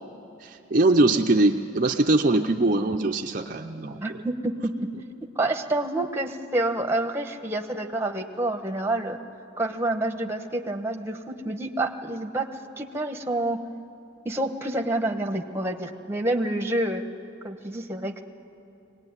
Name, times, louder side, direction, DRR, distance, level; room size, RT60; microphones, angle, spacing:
voice 1, 0.4-4.2, right 2 dB, 40° right, 3 dB, 0.6 m, -22 dB
voice 2, 4.0-4.7 5.3-9.2 9.6-12.5 12.8-13.6 14.2-17.0 17.4-18.2, right 1 dB, 10° right, 4 dB, 1.1 m, -28 dB
23.5 x 19.0 x 9.6 m, 2.8 s
head